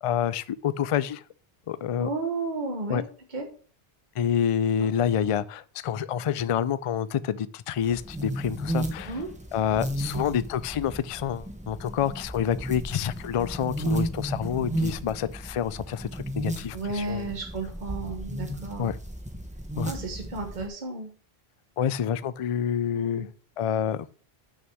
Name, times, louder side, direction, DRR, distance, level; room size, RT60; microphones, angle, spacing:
voice 1, 0.0-1.2 1.7-2.1 2.9-3.0 4.2-9.2 9.5-17.3 18.8-18.9 19.8-19.9 21.8-23.3 23.6-24.1, left 8 dB, 55° left, 0.3 m, -28 dB
voice 2, 2.0-3.0 3.3-3.4 4.8-4.9 9.1-9.3 16.7-18.9 19.9-21.1 22.9-23.3, right 3 dB, 45° right, 1.4 m, -33 dB
sound 1, 7.8-20.7, right 1 dB, 5° right, 1.1 m, -34 dB
6.3 x 6.3 x 6.1 m
omnidirectional pair, 1.1 m